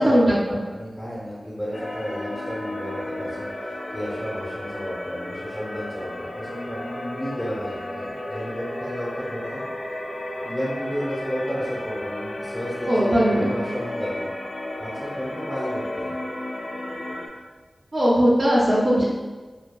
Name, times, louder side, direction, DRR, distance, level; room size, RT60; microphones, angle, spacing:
voice 1, 0.0-0.6 12.9-13.5 17.9-19.0, equal, 40° right, -7 dB, 0.6 m, -19 dB
voice 2, 0.7-3.5 3.9-9.6 10.4-14.3 14.8-16.2, equal, 5° left, -7 dB, 0.7 m, -32 dB
sound 1, 1.7-17.3, left 1 dB, 65° left, 0.5 m, -33 dB
4.7 x 2.2 x 2.3 m, 1.3 s
wide cardioid pair, 95°, 0 cm